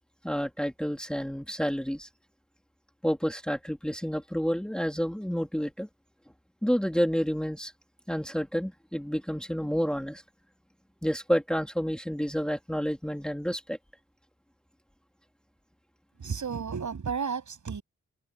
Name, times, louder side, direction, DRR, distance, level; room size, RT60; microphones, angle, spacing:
voice 1, 0.2-2.1 3.0-5.9 6.6-7.7 8.1-10.2 11.0-13.8, equal, 5° left, 2.6 m, -29 dB
voice 2, 16.2-17.8, right 6 dB, 70° right, 7.7 m, -32 dB
wide cardioid pair, 125°, 30 cm